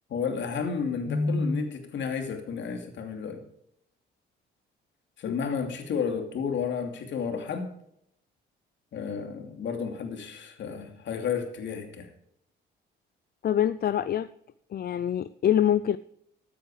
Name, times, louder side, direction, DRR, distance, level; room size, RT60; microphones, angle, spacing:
voice 1, 0.1-3.4 5.2-7.7 8.9-12.1, left 5 dB, 65° left, 5 dB, 2.7 m, -31 dB
voice 2, 13.4-14.3 14.7-16.0, left 10 dB, 50° left, 15 dB, 0.5 m, -25 dB
13.5 x 9.1 x 5.0 m, 0.75 s
cardioid pair, 90°, 20 cm